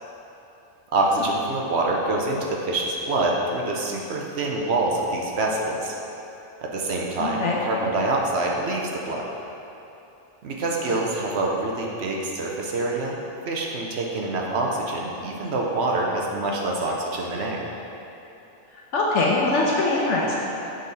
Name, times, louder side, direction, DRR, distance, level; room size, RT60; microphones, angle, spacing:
voice 1, 0.9-5.9 6.6-9.3 10.4-17.6, right 2 dB, 60° right, -1 dB, 0.9 m, -26 dB
voice 2, 7.2-7.6 10.8-11.0 18.9-20.3, left 2 dB, 65° left, -3 dB, 1.0 m, -22 dB
6.6 x 5.1 x 4.0 m, 2.9 s
omnidirectional pair, 1.4 m